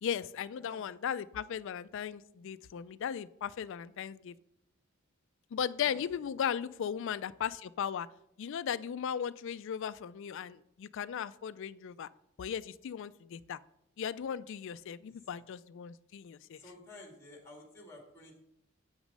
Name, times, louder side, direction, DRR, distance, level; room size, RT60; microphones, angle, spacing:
voice 1, 0.0-4.3 5.5-8.1 8.4-12.1 12.4-13.6 14.0-16.6, left 8 dB, 65° left, 15 dB, 0.4 m, -37 dB
voice 2, 5.8-6.3 15.1-15.4 16.5-18.4, left 2 dB, 15° left, 1 dB, 2.0 m, -53 dB
8.2 x 6.2 x 5.3 m, 0.80 s
head